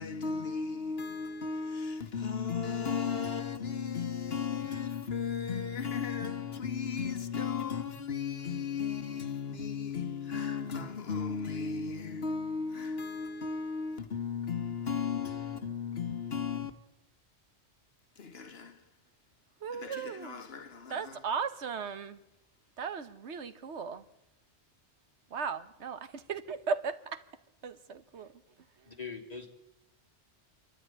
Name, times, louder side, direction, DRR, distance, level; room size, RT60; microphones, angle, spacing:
voice 1, 0.0-16.7 18.2-18.8 19.7-21.2, left 6 dB, 65° left, 1.4 m, -35 dB
voice 2, 19.6-20.4 20.9-22.2 22.8-24.0 25.3-27.2 27.6-28.3, right 5 dB, 85° right, 1.4 m, -36 dB
voice 3, 28.8-29.5, left 5 dB, 35° left, 2.8 m, -42 dB
26.0 x 13.0 x 9.7 m
omnidirectional pair, 1.1 m